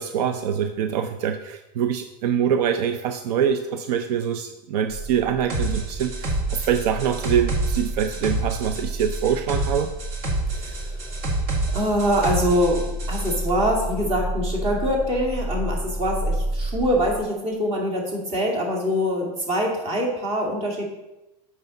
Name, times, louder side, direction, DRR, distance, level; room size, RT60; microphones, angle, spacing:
voice 1, 0.0-9.9, right 8 dB, 75° right, 8 dB, 0.6 m, -24 dB
sound 1, 5.5-13.4, right 2 dB, 50° right, 1.9 m, -28 dB
sound 2, 5.9-17.2, right 1 dB, 10° right, 2.1 m, -31 dB
voice 2, 10.5-11.2 11.7-20.8, equal, 30° right, -1 dB, 2.2 m, -24 dB
8.0 x 5.6 x 4.0 m, 0.96 s
supercardioid pair, 135°, 21 cm